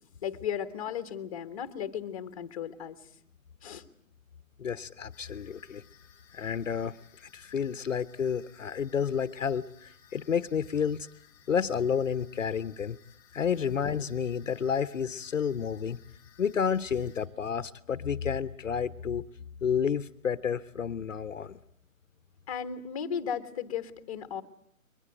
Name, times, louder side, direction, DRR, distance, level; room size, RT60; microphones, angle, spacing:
voice 1, 0.2-3.0 3.6-3.8 22.5-24.4, left 8 dB, 25° left, 10 dB, 1.3 m, -35 dB
voice 2, 4.6-5.8 6.3-6.9 7.2-11.1 11.5-13.0 13.3-16.0 16.4-19.2 19.6-21.6, left 7 dB, 60° left, 14 dB, 1.0 m, -30 dB
sound 1, 5.1-17.3, left 9 dB, 10° left, 2.4 m, -60 dB
22.5 x 20.5 x 9.1 m, 0.67 s
hypercardioid pair, 160°, 42 cm